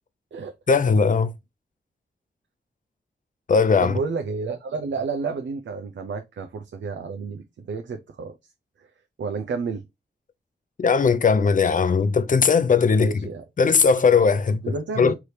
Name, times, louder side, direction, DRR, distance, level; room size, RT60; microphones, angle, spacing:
voice 1, 0.7-1.3 3.5-4.0 10.8-13.3 13.6-15.1, left 5 dB, 45° left, 0.6 m, -19 dB
voice 2, 3.8-8.4 8.8-8.9 9.2-9.8 13.0-13.4 14.6-15.1, right 4 dB, 85° right, 0.6 m, -31 dB
4.7 x 2.9 x 3.2 m
cardioid pair, 65°, 19 cm